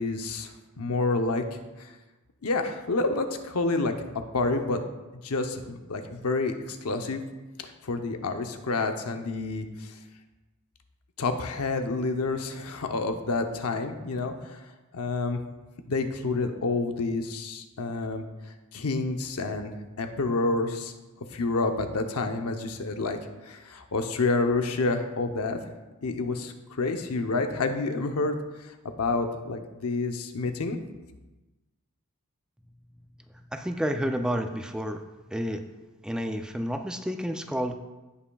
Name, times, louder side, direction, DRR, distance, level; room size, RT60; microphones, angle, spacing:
voice 1, 0.0-1.9 2.4-3.9 4.3-4.8 5.2-7.2 7.8-9.9 11.2-14.6 14.9-15.4 15.9-18.2 18.7-20.9 21.3-23.2 23.5-25.6 26.0-28.7 29.0-30.8, left 3 dB, 80° left, 6 dB, 0.8 m, -29 dB
voice 2, 33.5-35.0 35.3-35.6 36.0-37.8, equal, 5° right, 5 dB, 0.4 m, -30 dB
16.5 x 5.7 x 2.3 m, 1.1 s
head